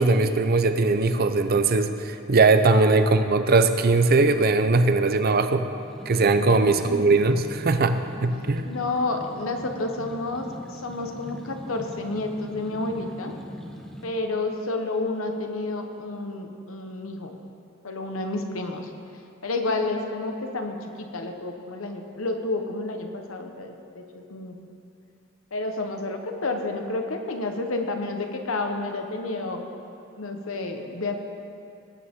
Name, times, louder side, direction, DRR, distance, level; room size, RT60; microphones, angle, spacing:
voice 1, 0.0-5.7 6.1-8.7, right 3 dB, 50° right, 9 dB, 0.6 m, -20 dB
sound 1, 5.7-14.0, equal, 5° left, 1.0 m, -41 dB
voice 2, 6.4-7.1 8.7-13.3 14.0-17.4 17.8-18.9 19.4-24.6 25.5-29.6 30.2-31.1, left 2 dB, 90° left, 4 dB, 1.1 m, -30 dB
19.0 x 8.9 x 3.7 m, 2.7 s
head